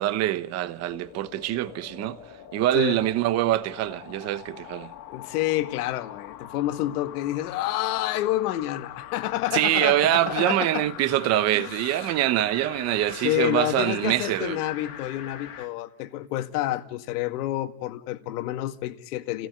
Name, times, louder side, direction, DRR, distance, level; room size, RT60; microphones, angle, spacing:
voice 1, 0.0-2.2 2.5-4.9 9.5-14.6, right 14 dB, 30° right, 1.1 m, -24 dB
sound 1, 0.7-15.7 16.2-16.3, left 10 dB, 45° left, 2.5 m, -43 dB
voice 2, 5.1-10.9 11.6-12.1 12.7-19.5, left 14 dB, 65° left, 2.0 m, -29 dB
29.0 x 17.0 x 9.5 m
supercardioid pair, 160°, 49 cm